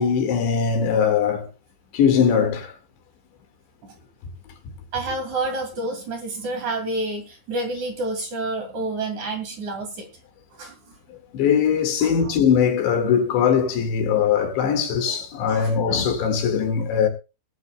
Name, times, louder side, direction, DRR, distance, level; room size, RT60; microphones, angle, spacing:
voice 1, 0.0-1.5 1.9-2.7 11.3-17.1, left 7 dB, 75° left, 4.1 m, -20 dB
voice 2, 4.9-10.1 10.6-11.0 12.0-12.3 15.5-15.7, right 2 dB, 45° right, 3.4 m, -29 dB
20.5 x 12.0 x 2.2 m
omnidirectional pair, 5.3 m